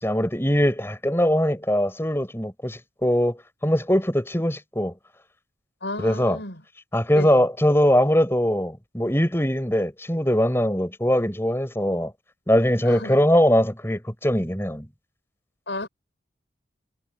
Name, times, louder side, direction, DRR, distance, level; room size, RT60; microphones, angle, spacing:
voice 1, 0.0-4.9 6.0-6.4 6.9-12.1 12.5-14.9, equal, 15° left, 5.9 m, -21 dB
voice 2, 5.8-6.6 7.2-7.4 12.8-13.2 15.7-15.9, left 2 dB, 70° left, 7.1 m, -32 dB
head